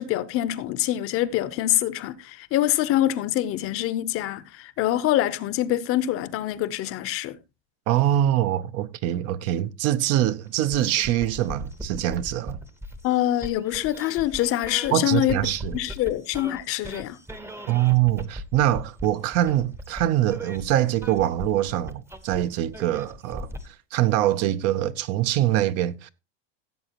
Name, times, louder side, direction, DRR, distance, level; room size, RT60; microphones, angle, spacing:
voice 1, 0.0-7.4 13.0-15.4 15.7-17.2, left 13 dB, 40° left, 0.7 m, -25 dB
voice 2, 7.9-12.6 14.9-15.8 17.7-23.5 23.9-26.1, right 13 dB, 45° right, 0.7 m, -24 dB
sound 1, 10.5-23.7, equal, 5° right, 0.8 m, -40 dB
16.5 x 7.8 x 2.9 m
supercardioid pair, 155°, 36 cm